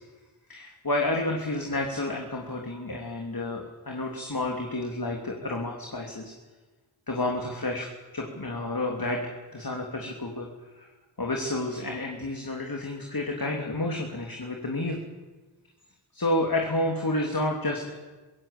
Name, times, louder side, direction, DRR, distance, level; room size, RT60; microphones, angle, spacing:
voice 1, 0.5-6.3 7.1-7.9 8.1-10.5 10.7-10.9 11.2-15.0 16.1-18.0, left 2 dB, 45° left, 1 dB, 3.3 m, -30 dB
24.0 x 17.0 x 8.5 m, 1.3 s
wide cardioid pair, 45°, 49 cm